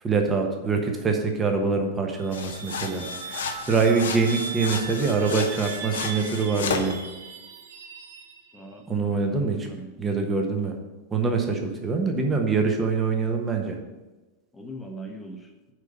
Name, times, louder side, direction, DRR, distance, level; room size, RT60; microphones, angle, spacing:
voice 1, 0.0-7.0 8.9-9.7 10.0-10.7 11.1-13.8, right 4 dB, 20° right, 3 dB, 1.2 m, -24 dB
sound 1, 2.1-8.7, right 6 dB, 60° right, 0.9 m, -38 dB
sound 2, 2.3-7.0, left 6 dB, 60° left, 0.7 m, -33 dB
voice 2, 8.5-9.9 11.5-11.6 14.5-15.5, right 1 dB, 10° left, 2 dB, 1.1 m, -41 dB
6.5 x 5.2 x 6.6 m, 1.1 s
figure-of-eight pair, 90°, 0 cm